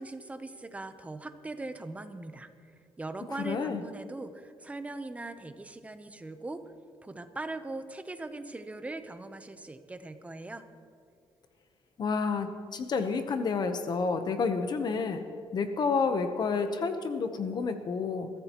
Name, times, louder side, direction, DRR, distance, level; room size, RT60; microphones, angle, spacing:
voice 1, 0.0-2.5 3.0-6.6 7.0-10.6, right 2 dB, 15° right, 9 dB, 0.7 m, -40 dB
voice 2, 3.4-3.8 12.0-15.2 15.5-18.3, left 5 dB, 45° left, 8 dB, 0.9 m, -29 dB
22.5 x 15.0 x 3.0 m, 2.3 s
cardioid pair, 155°, 10 cm